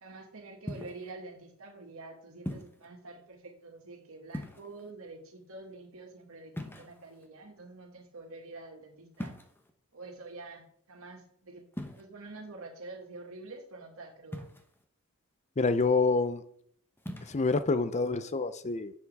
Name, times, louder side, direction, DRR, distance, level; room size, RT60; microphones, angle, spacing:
voice 1, 0.0-9.4 9.9-11.7 12.0-14.5, right 3 dB, 65° right, 2.0 m, -47 dB
sound 1, 0.7-1.1 2.5-2.9 4.3-4.9 6.5-7.3 9.2-9.7 11.7-12.0 14.3-14.8 17.0-17.4, equal, 10° left, 0.9 m, -40 dB
voice 2, 15.6-16.4 17.3-18.9, left 3 dB, 30° left, 0.6 m, -27 dB
10.5 x 7.2 x 3.5 m
head